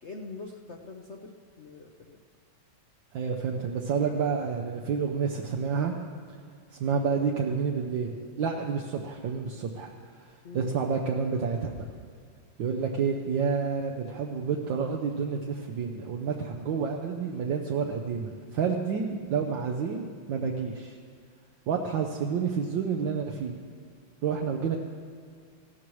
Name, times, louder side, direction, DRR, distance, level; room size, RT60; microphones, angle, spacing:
voice 1, 0.0-2.2 10.4-10.7, left 3 dB, 60° left, 1 dB, 0.7 m, -44 dB
voice 2, 3.1-5.9 6.7-9.9 10.5-11.9 12.6-21.0 21.7-23.6 24.2-24.8, right 6 dB, 70° right, 1 dB, 1.5 m, -29 dB
19.0 x 15.5 x 3.1 m, 2.1 s
omnidirectional pair, 2.2 m